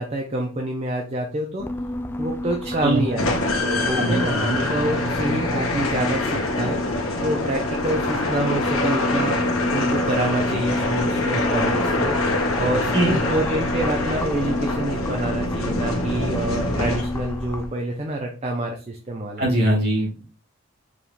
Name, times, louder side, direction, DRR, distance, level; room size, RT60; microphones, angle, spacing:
voice 1, 0.0-1.7 2.2-3.3 3.5-6.8 7.2-12.2 12.6-19.5, right 1 dB, 30° right, 1 dB, 0.6 m, -27 dB
sound 1, 1.6-17.7, left 1 dB, 10° left, 0.3 m, -30 dB
sound 2, 3.2-17.4, left 2 dB, 90° left, 1.2 m, -25 dB
voice 2, 3.8-4.4 12.9-13.2 19.4-20.2, right 1 dB, 50° right, -1 dB, 2.4 m, -22 dB
5.0 x 3.6 x 2.5 m, 0.38 s
head